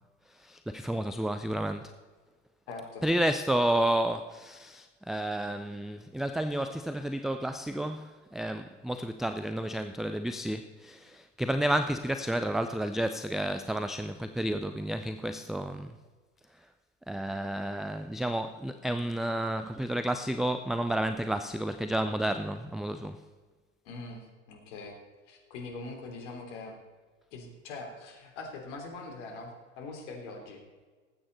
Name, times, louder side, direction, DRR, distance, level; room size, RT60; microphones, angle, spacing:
voice 1, 0.4-1.9 3.0-15.9 17.1-23.2, right 1 dB, ahead, 10 dB, 0.3 m, -31 dB
voice 2, 2.7-3.1 23.9-24.9 25.3-26.8 27.3-30.6, left 3 dB, 65° left, 2 dB, 3.5 m, -42 dB
19.5 x 8.7 x 4.1 m, 1.4 s
hypercardioid pair, 85°, 38 cm